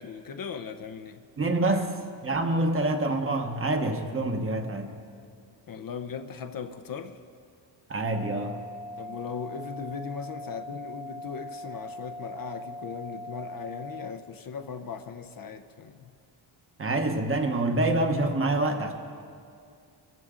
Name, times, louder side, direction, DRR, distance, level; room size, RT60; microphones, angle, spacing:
voice 1, 0.0-1.2 1.6-1.9 5.7-7.2 9.0-16.1, left 6 dB, 50° left, 0.7 m, -38 dB
voice 2, 1.4-1.9 2.2-4.9 7.9-8.6 16.8-18.9, right 2 dB, 30° right, 1.1 m, -26 dB
sound 1, 8.1-14.1, left 1 dB, 65° left, 2.1 m, -41 dB
22.0 x 13.5 x 3.7 m
cardioid pair, 145°, 45 cm